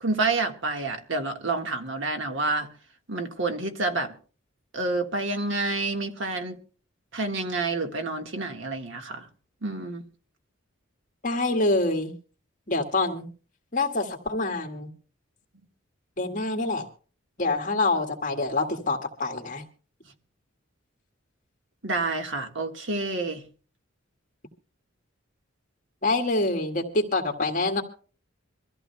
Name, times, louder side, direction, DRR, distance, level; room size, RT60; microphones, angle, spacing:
voice 1, 0.0-2.7 3.1-4.1 4.7-6.6 7.1-9.3 9.6-10.0 21.8-23.4, right 3 dB, 65° right, 1.6 m, -28 dB
voice 2, 11.2-12.1 12.7-13.2 13.7-14.9 16.2-16.9 17.4-19.6 26.0-27.8, left 2 dB, 40° left, 1.9 m, -26 dB
24.5 x 14.5 x 2.3 m
head